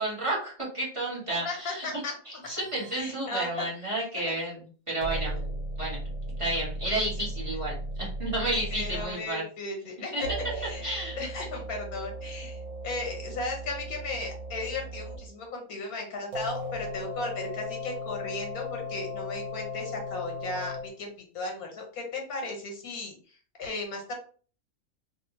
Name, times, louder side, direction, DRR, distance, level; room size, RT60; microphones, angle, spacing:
voice 1, 0.0-1.9 2.3-4.6 4.9-5.4 5.8-6.0 6.4-9.4 10.1-10.2 10.8-11.2, right 1 dB, 25° right, -4 dB, 1.2 m, -31 dB
voice 2, 1.3-2.4 2.9-3.9 4.2-4.3 8.7-10.8 11.1-24.1, left 2 dB, 85° left, 1 dB, 1.6 m, -36 dB
sound 1, 2.4-3.1 5.0-9.1 10.2-15.3 16.3-20.9, equal, 75° right, 1.2 m, -36 dB
3.3 x 2.6 x 2.8 m, 0.41 s
omnidirectional pair, 1.5 m